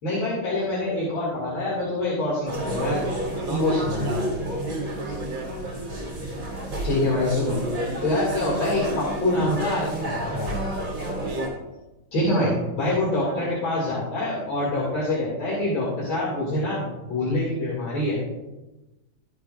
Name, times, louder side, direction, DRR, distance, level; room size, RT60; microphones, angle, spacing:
voice 1, 0.0-3.0 3.5-4.2 6.8-7.6 8.0-10.6 12.1-18.2, left 1 dB, 75° left, -7 dB, 3.3 m, -25 dB
sound 1, 2.5-11.5, right 1 dB, 50° right, 3.2 m, -30 dB
voice 2, 3.1-5.5 11.2-11.5 13.2-13.6, right 2 dB, 70° right, 2 dB, 1.9 m, -35 dB
13.0 x 8.3 x 2.5 m, 1.0 s
omnidirectional pair, 2.2 m